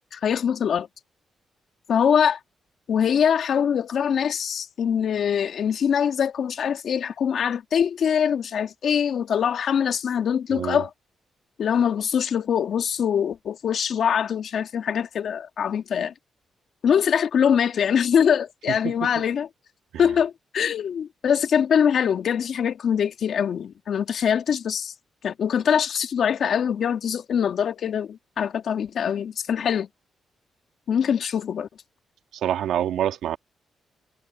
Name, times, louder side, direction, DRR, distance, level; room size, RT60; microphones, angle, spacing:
voice 1, 0.1-0.9 1.9-2.4 2.9-10.9 11.6-16.1 16.8-19.5 20.0-24.9 25.2-29.9 30.9-31.7, left 8 dB, 70° left, 2.3 m, -23 dB
voice 2, 10.5-10.9 18.7-19.1 19.9-20.0 32.3-33.4, right 10 dB, 85° right, 1.9 m, -27 dB
cardioid pair, 80°, 0 cm